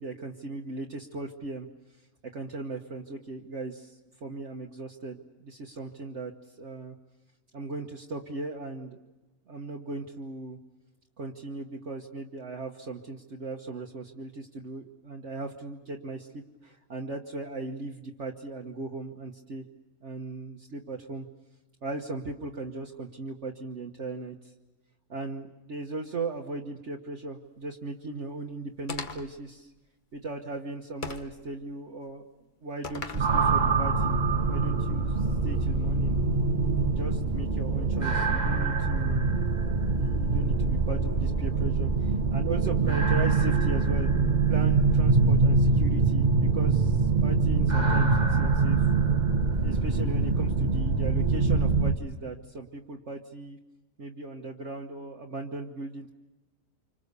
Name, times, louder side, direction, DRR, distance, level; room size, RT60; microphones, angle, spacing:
voice 1, 0.0-1.7 2.3-3.9 4.2-6.3 6.6-6.9 7.5-9.1 9.5-10.6 11.2-19.7 20.0-21.3 21.8-24.5 25.1-29.7 30.1-32.2 32.6-34.2 34.5-36.2 36.9-39.4 39.9-44.1 44.5-48.8 49.6-53.6 54.0-56.1, right 2 dB, 55° right, 1 dB, 1.5 m, -38 dB
sound 1, 28.9-29.4 31.0-31.4 32.8-33.3, left 4 dB, 35° left, 1.2 m, -37 dB
sound 2, 33.1-51.9, right 4 dB, 30° right, 1.2 m, -24 dB
28.0 x 25.5 x 6.9 m, 1.1 s
omnidirectional pair, 1.5 m